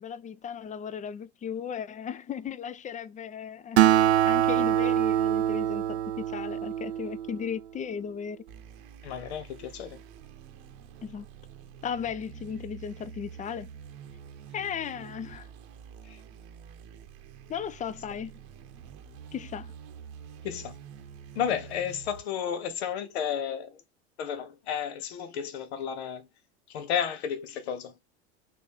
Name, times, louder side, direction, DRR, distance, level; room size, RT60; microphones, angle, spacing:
voice 1, 0.0-8.4 11.0-11.3 11.8-13.7 14.5-15.5 17.5-18.4 19.3-19.7, left 7 dB, 25° left, 0.5 m, -36 dB
Acoustic guitar, 3.8-7.5, right 11 dB, 85° right, 0.5 m, -24 dB
sound 1, 8.5-22.2, right 7 dB, 60° right, 1.0 m, -47 dB
voice 2, 9.0-10.0 16.0-16.2 20.4-20.8 21.3-23.8 24.2-26.3 26.7-27.9, left 8 dB, 75° left, 1.0 m, -32 dB
3.9 x 3.2 x 3.4 m
hypercardioid pair, 75°, 32 cm